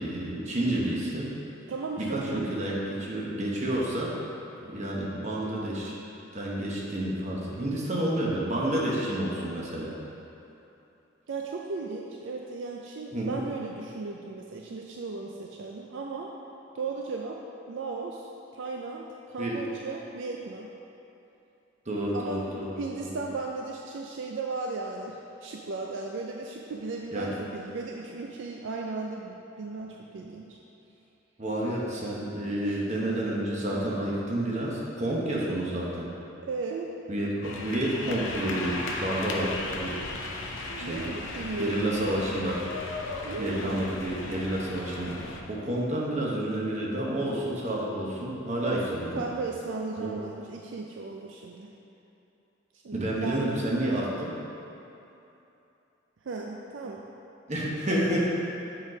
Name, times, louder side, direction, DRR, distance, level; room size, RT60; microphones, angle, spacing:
voice 1, 0.0-1.3 2.0-4.1 4.6-5.9 6.3-9.9 13.1-13.4 19.4-19.6 21.9-23.2 27.1-27.3 31.4-36.1 37.1-40.0 40.7-41.1 41.6-42.6 43.4-49.2 50.0-50.1 52.9-54.3 57.5-58.3, right 1 dB, 35° right, -4 dB, 1.0 m, -30 dB
voice 2, 1.7-2.3 11.3-16.3 16.7-17.4 17.7-20.7 22.1-22.4 22.8-30.6 32.6-33.2 36.4-36.9 40.7-41.8 43.2-43.8 48.6-51.7 52.8-53.5 56.2-57.0, right 3 dB, 65° right, 0 dB, 0.4 m, -36 dB
sound 1, 37.4-45.4, left 2 dB, 75° left, 0.7 m, -36 dB
7.2 x 4.1 x 5.0 m, 2.9 s
head